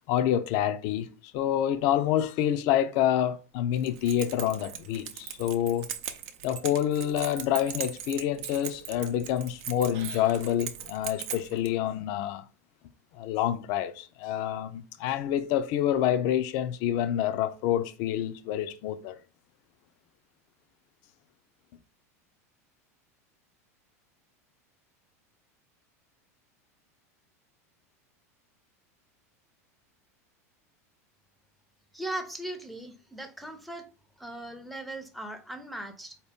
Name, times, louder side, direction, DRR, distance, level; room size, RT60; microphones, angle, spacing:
voice 1, 0.1-1.1 1.3-5.9 6.4-12.4 13.1-19.2, left 11 dB, 55° left, 0.5 m, -27 dB
Keys jangling, 3.8-11.7, right 9 dB, 60° right, 0.6 m, -40 dB
voice 2, 31.9-33.9 34.2-36.2, right 1 dB, ahead, 0.6 m, -38 dB
4.2 x 2.8 x 3.5 m
hypercardioid pair, 100°, 8 cm